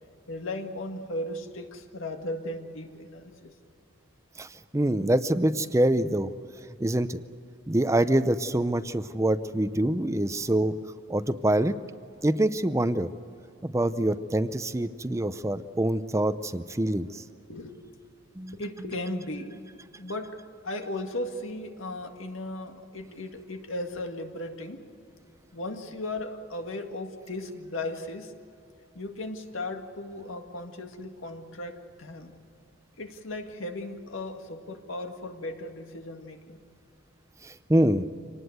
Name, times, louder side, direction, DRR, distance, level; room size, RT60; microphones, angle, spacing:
voice 1, 0.3-3.5 17.5-18.0 18.5-19.6 20.0-20.4 20.6-24.8 25.5-28.3 29.0-32.3 33.0-36.6, left 1 dB, 85° left, 5 dB, 1.9 m, -36 dB
voice 2, 4.7-6.3 6.8-7.2 7.7-10.7 11.1-11.8 12.2-13.1 13.6-17.2 18.4-18.6 37.4-38.1, right 1 dB, 15° right, 12 dB, 0.6 m, -25 dB
25.5 x 19.0 x 8.0 m, 2.5 s
head